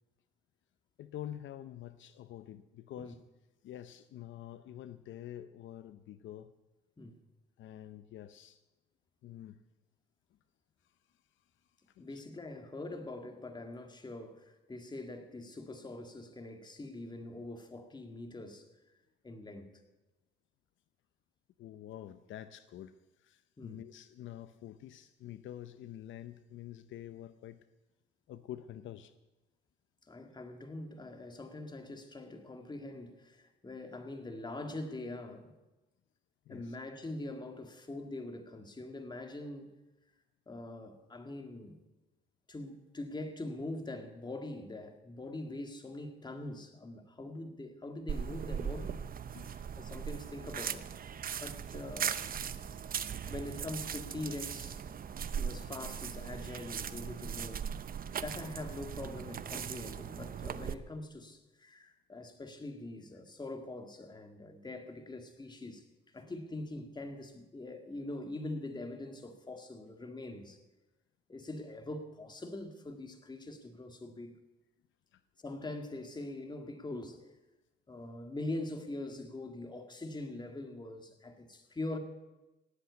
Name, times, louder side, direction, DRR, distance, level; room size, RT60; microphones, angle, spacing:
voice 1, 1.0-3.2 3.6-6.5 7.6-8.6 9.2-9.6 10.8-10.9 11.9-12.2 21.6-27.6 28.3-29.1 36.5-36.8 49.3-49.8 75.1-75.2, left 11 dB, 75° left, 0.7 m, -47 dB
voice 2, 12.0-18.7 19.2-19.7 23.6-23.8 30.0-35.5 36.5-39.7 40.5-41.8 42.5-49.0 49.8-52.3 52.5-52.7 53.3-54.8 55.4-57.6 58.2-65.8 66.1-70.6 71.3-74.4 75.4-77.2 77.9-82.0, left 2 dB, 20° left, 2.1 m, -43 dB
sound 1, 48.1-60.7, right 8 dB, 45° right, 0.8 m, -39 dB
18.0 x 8.1 x 8.3 m
cardioid pair, 90°, 20 cm